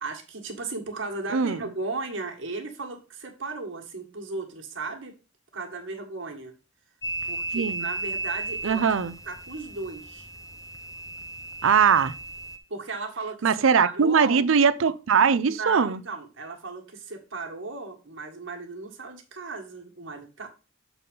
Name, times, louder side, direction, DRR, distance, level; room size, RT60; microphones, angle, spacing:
voice 1, 0.0-5.1 5.5-6.5 7.3-8.9 9.3-10.3 12.7-13.5 13.8-14.5 15.4-20.5, right 3 dB, 70° right, 1.8 m, -35 dB
voice 2, 1.3-1.6 7.5-7.9 8.6-9.1 11.6-12.1 13.4-16.0, right 6 dB, 85° right, 0.5 m, -21 dB
sound 1, 7.0-12.6, right 2 dB, 15° left, 0.6 m, -35 dB
6.9 x 4.2 x 5.4 m
head